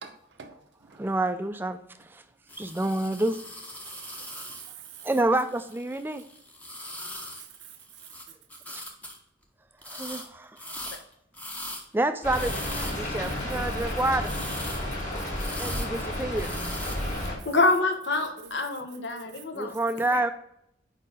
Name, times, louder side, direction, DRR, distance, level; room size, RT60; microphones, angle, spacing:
voice 1, 0.0-1.0 3.8-5.0 7.4-7.8 15.6-16.0 17.1-17.8 18.1-18.5 19.3-19.8, right 7 dB, 70° right, 0.7 m, -46 dB
voice 2, 1.0-1.8 2.1-2.2 2.6-3.4 5.0-6.2 8.7-8.8 9.9-10.7 11.9-14.3 15.6-16.5 19.5-20.3, right 2 dB, 10° right, 0.3 m, -28 dB
sound 1, 2.5-8.3 8.5-9.2 9.8-10.3 10.6-11.8 12.3-13.1 14.2-14.9 15.3-16.0 16.3-17.0, left 1 dB, 10° left, 0.7 m, -40 dB
Rain, 12.2-17.3, left 1 dB, 40° left, 2.1 m, -32 dB
voice 3, 17.4-19.7 20.1-20.2, left 3 dB, 80° left, 1.0 m, -26 dB
4.8 x 4.6 x 4.8 m
head